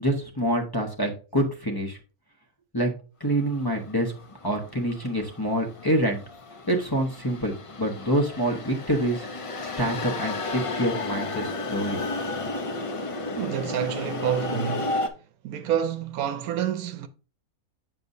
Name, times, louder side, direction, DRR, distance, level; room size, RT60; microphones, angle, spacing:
voice 1, 0.0-2.0 2.7-2.9 3.2-4.1 4.4-6.2 6.7-9.3 9.8-12.0, right 1 dB, 20° left, 1.0 m, -26 dB
sound 1, 3.4-15.1, left 2 dB, 40° left, 0.5 m, -33 dB
voice 2, 13.4-15.1 15.4-17.1, right 9 dB, 80° right, 1.1 m, -28 dB
7.6 x 6.9 x 2.6 m
omnidirectional pair, 1.5 m